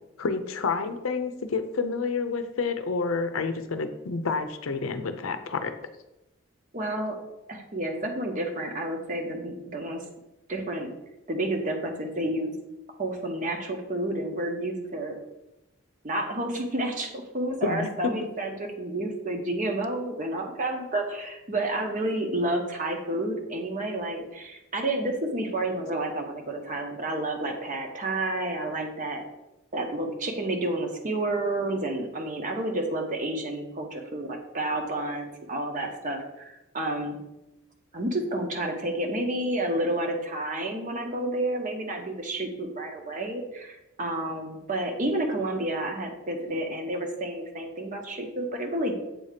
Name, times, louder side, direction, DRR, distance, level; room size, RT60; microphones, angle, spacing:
voice 1, 0.2-5.7 17.6-18.1, left 4 dB, 75° left, 9 dB, 0.6 m, -29 dB
voice 2, 6.7-7.2 7.5-10.0 10.5-10.9 11.3-12.5 13.0-15.2 16.0-29.2 29.7-37.2 37.9-48.9, right 1 dB, 40° right, 3 dB, 0.9 m, -30 dB
7.7 x 2.8 x 5.0 m, 0.92 s
head